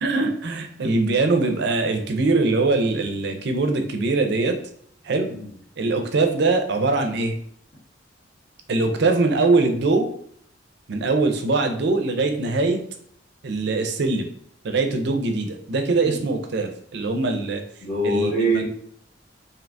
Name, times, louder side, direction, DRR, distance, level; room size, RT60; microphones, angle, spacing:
voice 1, 0.0-4.6 5.0-5.3 5.8-7.3 8.7-10.1 10.9-12.8 13.4-14.3 14.6-17.6 18.0-18.6, right 3 dB, 65° right, 5 dB, 0.5 m, -22 dB
voice 2, 17.8-18.7, right 1 dB, 45° left, -5 dB, 1.4 m, -23 dB
3.3 x 2.7 x 2.5 m, 0.62 s
head